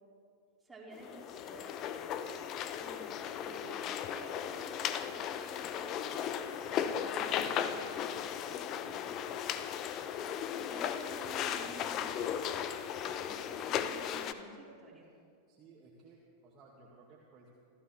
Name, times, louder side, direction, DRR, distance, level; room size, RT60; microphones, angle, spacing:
voice 1, 0.6-1.9 2.8-9.0 10.7-12.5 13.0-15.1, right 2 dB, 10° right, -6 dB, 4.3 m, -53 dB
sound 1, 0.9-14.3, left 9 dB, 35° left, 0.8 m, -36 dB
voice 2, 6.7-7.7 13.5-13.9 15.5-17.5, right 3 dB, 30° right, -3 dB, 2.0 m, -58 dB
27.0 x 14.5 x 3.3 m, 2.2 s
figure-of-eight pair, 90°, 0 cm